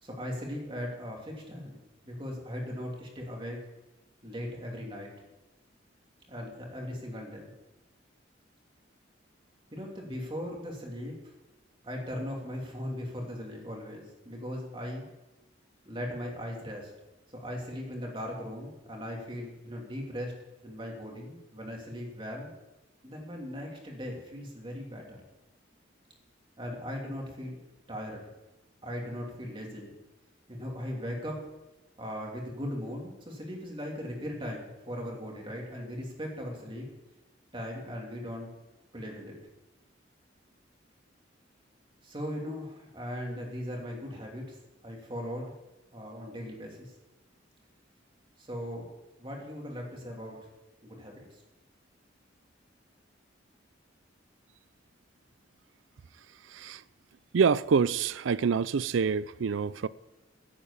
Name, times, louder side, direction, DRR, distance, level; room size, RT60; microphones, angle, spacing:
voice 1, 0.0-1.8 2.0-3.6 4.2-5.1 6.3-7.5 9.7-11.3 11.8-15.0 15.8-16.9 17.3-20.4 20.6-22.5 23.0-25.2 26.6-27.6 27.9-28.3 28.8-29.9 30.5-31.4 32.0-36.9 37.5-38.5 38.9-39.4 42.0-44.6 44.8-45.5 45.9-46.9 48.4-48.9 49.2-50.4 50.8-51.4, equal, 25° right, 3.0 m, -38 dB
voice 2, 56.5-56.8 57.3-59.9, right 6 dB, 90° right, 0.4 m, -26 dB
10.5 x 8.8 x 8.5 m
head